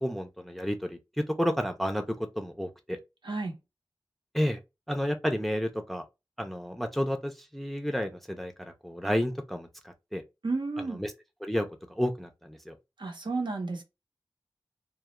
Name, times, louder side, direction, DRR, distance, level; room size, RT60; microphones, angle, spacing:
voice 1, 0.0-3.0 4.3-4.6 4.9-6.0 6.4-10.2 11.0-11.1 11.4-12.7, equal, ahead, 0.4 m, -31 dB
voice 2, 3.2-3.5 10.4-11.0 13.0-13.8, right 3 dB, 70° right, 0.7 m, -32 dB
2.3 x 2.0 x 2.9 m
wide cardioid pair, 65°, 8 cm